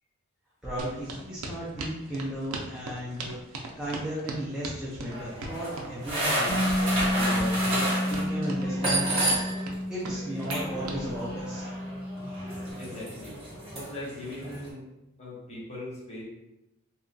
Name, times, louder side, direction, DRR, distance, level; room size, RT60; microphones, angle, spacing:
voice 1, 0.6-3.4 3.8-9.4 9.9-11.6, equal, 5° right, -8 dB, 0.4 m, -35 dB
sound 1, 0.8-11.0, right 2 dB, 75° right, 0.4 m, -39 dB
sound 2, 5.1-9.7 10.0-14.7, right 1 dB, 25° right, 1.0 m, -32 dB
Bass guitar, 6.5-12.7, left 1 dB, 75° left, 1.3 m, -31 dB
voice 2, 12.8-13.4 13.7-14.9 15.2-16.2, left 1 dB, 30° left, -6 dB, 0.9 m, -39 dB
2.8 x 2.3 x 2.5 m, 0.91 s
head